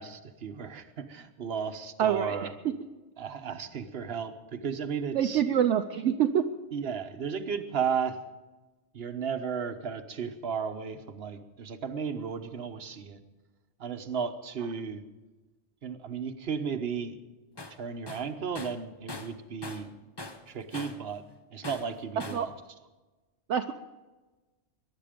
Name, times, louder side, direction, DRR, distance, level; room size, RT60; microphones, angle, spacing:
voice 1, 0.0-2.5 3.2-5.4 6.7-8.2 8.9-13.2 13.8-15.0 15.8-17.2 17.8-19.9 20.5-21.2 21.5-22.5, right 6 dB, 55° right, 8 dB, 1.2 m, -34 dB
voice 2, 2.0-2.4 5.1-6.4 22.3-22.5 23.5-23.7, right 9 dB, 70° right, 5 dB, 1.0 m, -25 dB
Tools, 17.6-17.8 18.1-19.9 20.2-21.1 21.6-22.5, left 2 dB, 20° left, 0.9 m, -42 dB
23.0 x 11.0 x 5.1 m, 1.2 s
omnidirectional pair, 1.3 m